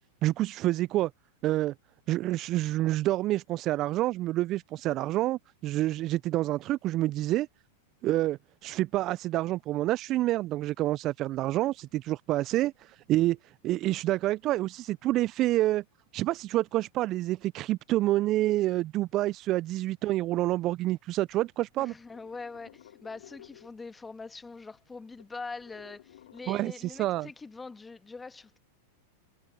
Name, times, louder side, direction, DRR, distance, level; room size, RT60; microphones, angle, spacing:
voice 1, 0.2-1.1 1.4-1.7 2.1-7.5 8.0-13.4 13.6-15.8 16.1-21.9 26.5-26.7 27.0-27.3, right 16 dB, 40° right, 0.5 m, -28 dB
sound 1, 20.2-21.3 21.6-24.2 24.5-24.6 24.8-27.3, left 12 dB, 70° left, 2.5 m, -56 dB
voice 2, 21.8-28.6, left 4 dB, 15° left, 1.8 m, -43 dB
hypercardioid pair, 95°, 0 cm